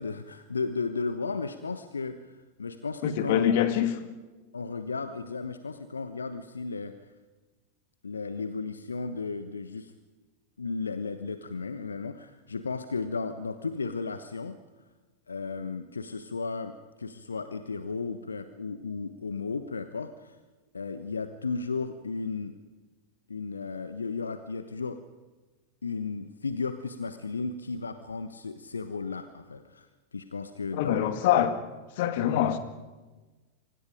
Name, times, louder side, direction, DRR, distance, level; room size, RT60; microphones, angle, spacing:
voice 1, 0.0-3.6 4.5-6.9 8.0-9.9 10.6-14.6 15.3-20.4 20.7-22.6 23.3-25.0 25.8-31.1, left 4 dB, 75° left, 10 dB, 1.2 m, -34 dB
voice 2, 3.0-4.0 30.7-31.6 32.0-32.6, left 10 dB, 50° left, 10 dB, 2.1 m, -24 dB
29.0 x 25.0 x 5.1 m, 1.2 s
figure-of-eight pair, 90°, 0 cm